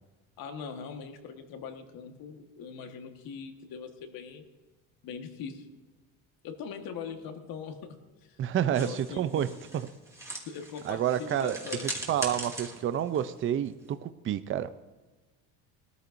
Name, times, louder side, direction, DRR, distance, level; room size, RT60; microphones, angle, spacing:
voice 1, 0.4-4.4 5.0-5.7 6.4-7.8 8.2-8.4 8.6-9.5 10.4-11.9, left 6 dB, 60° left, 5 dB, 1.6 m, -41 dB
voice 2, 8.4-9.5 10.9-11.6 12.1-13.7 14.0-14.7, right 10 dB, 30° right, 13 dB, 0.5 m, -28 dB
sound 1, 8.7-14.0, right 1 dB, 5° right, 2.1 m, -41 dB
18.5 x 13.5 x 2.6 m, 1.2 s
cardioid pair, 115°, 40 cm